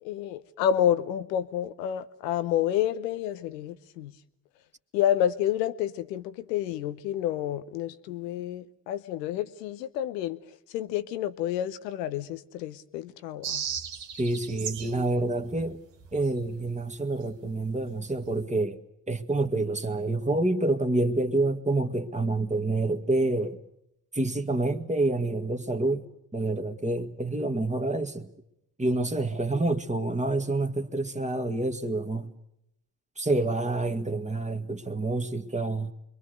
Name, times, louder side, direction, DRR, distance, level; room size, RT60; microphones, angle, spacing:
voice 1, 0.0-4.2 4.9-13.7, left 10 dB, 85° left, 0.9 m, -29 dB
sound 1, 13.4-15.0 15.3-16.9 17.2-17.3 17.6-17.8 18.1-18.4, right 8 dB, 60° right, 1.6 m, -37 dB
voice 2, 14.1-15.8 16.1-18.8 19.1-23.6 24.1-26.1 26.3-28.3 28.8-32.3 33.2-35.9, right 2 dB, 15° right, 1.9 m, -27 dB
26.0 x 23.0 x 6.6 m
hypercardioid pair, 40°, 48 cm